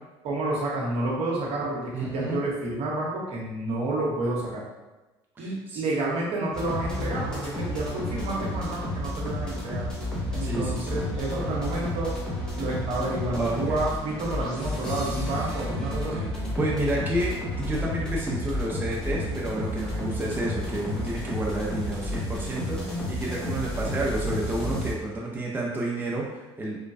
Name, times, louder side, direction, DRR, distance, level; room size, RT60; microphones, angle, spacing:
voice 1, 0.2-4.6 5.4-9.8 10.3-12.1 12.6-16.3, right 2 dB, 60° right, -3 dB, 0.9 m, -30 dB
voice 2, 1.9-2.4 5.4-5.8 10.4-11.1 13.3-13.8 16.6-26.8, right 1 dB, 15° right, -4 dB, 0.7 m, -30 dB
sound 1, 6.5-24.9, left 1 dB, 5° left, 1.0 m, -31 dB
3.1 x 2.2 x 2.6 m, 1.1 s
supercardioid pair, 75°, 12 cm